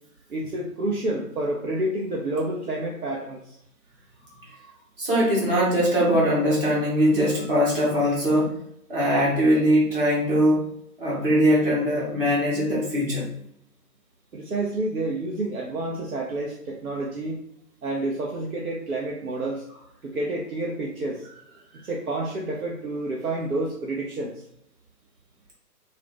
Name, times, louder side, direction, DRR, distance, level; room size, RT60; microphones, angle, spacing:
voice 1, 0.3-3.6 14.3-17.4 17.8-19.6 20.0-21.3 21.8-24.3, right 2 dB, 60° right, -2 dB, 0.8 m, -29 dB
voice 2, 5.0-8.6 8.9-10.7 11.0-13.3, equal, 35° right, -5 dB, 1.4 m, -21 dB
2.9 x 2.8 x 3.5 m, 0.74 s
figure-of-eight pair, 150°, 49 cm